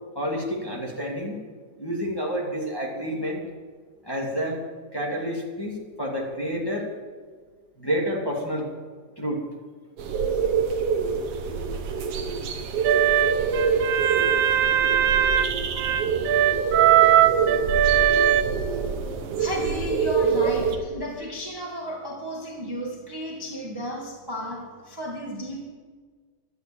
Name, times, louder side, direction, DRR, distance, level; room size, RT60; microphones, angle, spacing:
voice 1, 0.1-1.3 1.8-3.4 4.0-4.6 4.9-6.9 7.8-8.7 9.1-9.4 14.5-14.6, equal, 10° left, -3 dB, 1.5 m, -29 dB
sound 1, 10.0-20.8, right 5 dB, 60° right, 1.7 m, -26 dB
sound 2, 12.8-18.4, right 10 dB, 80° right, 1.9 m, -20 dB
voice 2, 19.4-25.6, equal, 15° right, -2 dB, 0.8 m, -33 dB
13.0 x 8.4 x 8.6 m, 1.5 s
omnidirectional pair, 3.8 m